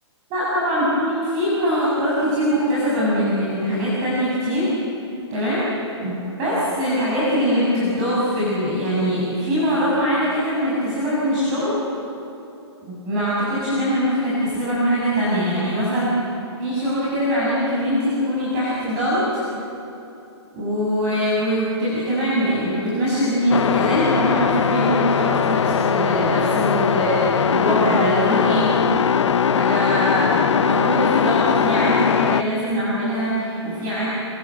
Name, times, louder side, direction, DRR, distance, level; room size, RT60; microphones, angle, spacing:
voice 1, 0.3-4.7 5.3-5.7 6.0-11.7 12.9-16.2 16.6-19.4 20.5-28.7 29.6-34.1, equal, 25° right, -7 dB, 7.6 m, -22 dB
sound 1, 23.5-32.4, left 7 dB, 80° left, 1.1 m, -20 dB
27.5 x 26.0 x 7.9 m, 3.0 s
hypercardioid pair, 165°, 15 cm